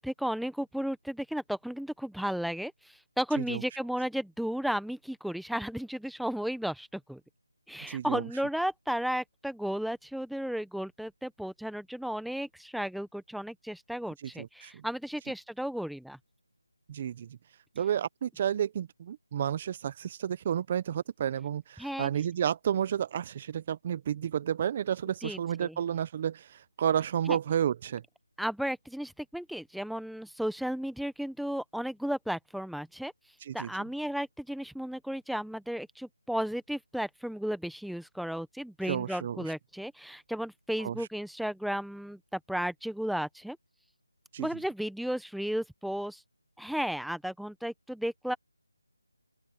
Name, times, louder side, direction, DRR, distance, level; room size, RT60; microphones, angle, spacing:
voice 1, 0.0-7.2 7.7-16.2 21.8-22.1 25.2-25.8 27.3-27.4 28.4-33.1 33.5-43.6 44.4-46.2 46.6-48.4, equal, ahead, 0.9 m, -34 dB
voice 2, 7.9-8.3 14.2-14.8 16.9-17.3 17.8-28.0 33.4-33.7 38.8-39.4 40.8-41.1 44.3-44.5, right 9 dB, 30° right, 0.7 m, -31 dB
open air
figure-of-eight pair, 165°, 0 cm